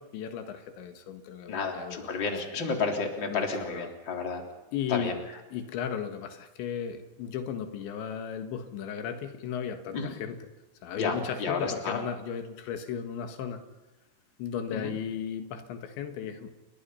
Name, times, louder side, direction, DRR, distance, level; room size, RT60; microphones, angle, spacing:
voice 1, 0.0-2.1 3.3-3.9 4.7-5.2 5.5-10.4 10.8-13.6 14.4-16.5, left 8 dB, 90° left, 7 dB, 4.1 m, -35 dB
voice 2, 1.5-4.4 4.9-5.2 9.9-10.1 11.0-12.0 14.7-15.0, left 4 dB, 30° left, 3 dB, 3.7 m, -31 dB
30.0 x 23.5 x 5.7 m, 1.1 s
omnidirectional pair, 5.0 m